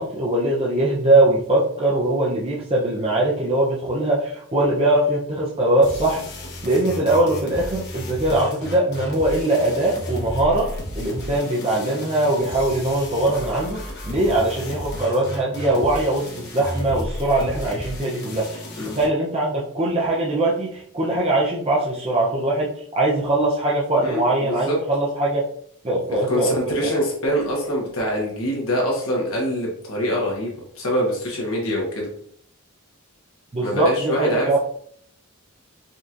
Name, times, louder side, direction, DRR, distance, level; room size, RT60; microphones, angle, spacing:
voice 1, 0.0-6.2 6.6-25.4 25.8-26.9 33.5-34.6, right 1 dB, 25° right, -5 dB, 0.6 m, -21 dB
sound 1, 5.8-19.1, left 1 dB, 50° left, 1.0 m, -33 dB
voice 2, 24.0-24.8 26.1-32.1 33.6-34.6, equal, 70° left, -2 dB, 1.2 m, -24 dB
5.1 x 2.9 x 2.5 m, 0.62 s
head